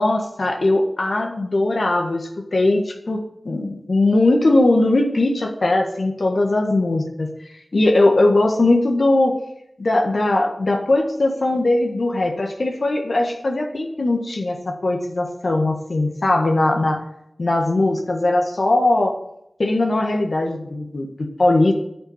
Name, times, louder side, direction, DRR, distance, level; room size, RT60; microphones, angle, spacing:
voice 1, 0.0-7.3 7.7-9.4 9.8-17.0 17.4-19.2 19.6-21.7, left 2 dB, 65° left, 3 dB, 1.6 m, -19 dB
9.9 x 5.8 x 8.6 m, 0.79 s
cardioid pair, 40°, 0 cm